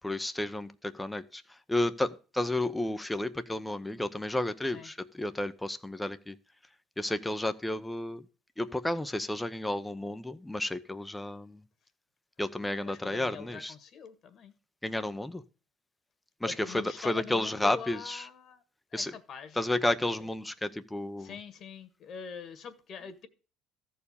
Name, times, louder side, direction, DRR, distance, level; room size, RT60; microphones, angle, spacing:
voice 1, 0.0-1.4 1.7-6.3 7.0-8.2 8.6-11.6 12.4-13.7 14.8-15.4 16.4-18.3 18.9-19.1 19.6-21.3, left 1 dB, 5° left, 0.8 m, -32 dB
voice 2, 12.8-14.5 16.4-18.6 18.9-19.6 20.2-20.3 21.2-23.3, left 6 dB, 45° left, 1.7 m, -44 dB
14.0 x 4.7 x 8.6 m
cardioid pair, 115°, 0 cm